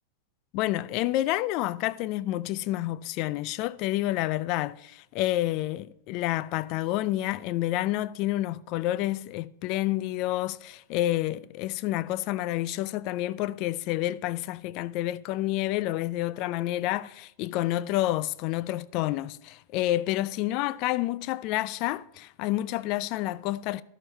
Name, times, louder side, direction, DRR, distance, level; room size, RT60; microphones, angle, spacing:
voice 1, 0.5-23.8, left 15 dB, 50° left, 0.4 m, -29 dB
12.0 x 6.9 x 4.4 m
hypercardioid pair, 110°, 0 cm